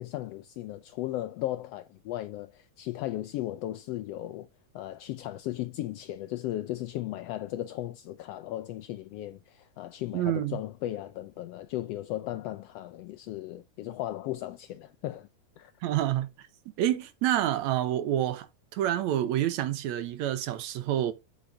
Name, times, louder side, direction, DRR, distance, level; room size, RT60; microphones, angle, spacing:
voice 1, 0.0-4.5 4.7-15.3 15.6-15.7, left 14 dB, 85° left, 1.4 m, -36 dB
voice 2, 10.1-10.6 15.8-16.3 16.8-18.5 18.7-21.1, right 12 dB, 75° right, 2.2 m, -28 dB
8.0 x 6.5 x 2.6 m
omnidirectional pair, 3.3 m